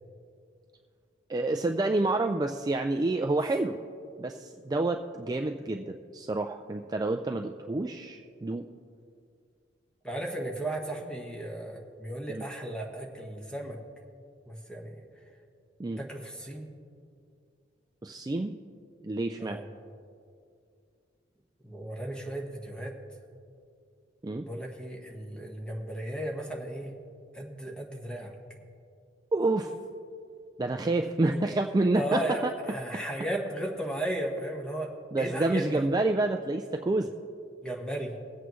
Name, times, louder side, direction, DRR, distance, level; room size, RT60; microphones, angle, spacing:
voice 1, 1.3-3.8 4.2-8.7 12.3-12.4 15.8-16.0 18.0-18.6 19.0-19.6 24.2-24.5 29.3-29.8 30.6-32.5 35.1-37.1, right 2 dB, 20° right, 4 dB, 0.4 m, -28 dB
voice 2, 10.0-13.8 14.5-14.9 16.0-16.7 19.4-19.6 21.6-22.9 24.4-26.9 27.3-28.3 31.9-32.4 32.7-34.9 35.2-35.8 37.6-38.2, right 1 dB, 5° left, 0 dB, 1.4 m, -35 dB
22.0 x 8.2 x 3.1 m, 2.4 s
head